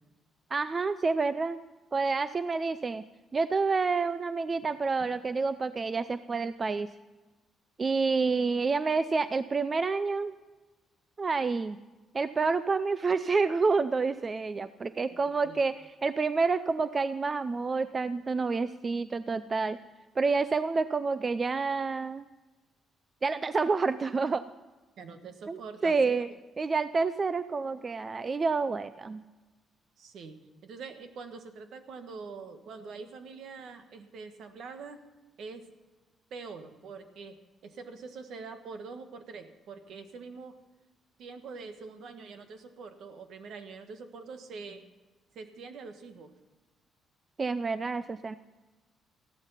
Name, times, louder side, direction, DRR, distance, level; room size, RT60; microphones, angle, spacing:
voice 1, 0.5-1.6 1.9-3.0 3.3-6.9 7.8-10.3 11.2-11.8 12.1-19.8 20.2-22.3 23.2-24.4 25.5-26.3 26.6-29.2 47.4-48.3, right 4 dB, 35° right, 13 dB, 0.5 m, -28 dB
voice 2, 15.1-15.6 25.0-26.4 30.0-35.0 35.4-35.7 36.3-40.6 41.2-44.8 45.3-46.3, right 4 dB, 70° right, 8 dB, 1.5 m, -44 dB
14.5 x 12.0 x 5.7 m, 1.2 s
cardioid pair, 90°, 0 cm